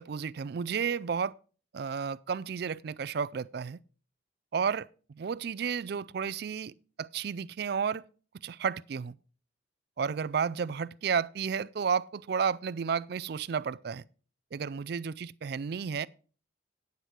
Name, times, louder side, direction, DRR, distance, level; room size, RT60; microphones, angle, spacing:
voice 1, 0.0-1.3 1.7-3.8 4.5-8.0 8.4-9.2 10.0-14.0 14.5-16.1, right 6 dB, 50° right, 0.3 m, -32 dB
9.5 x 8.2 x 4.4 m
head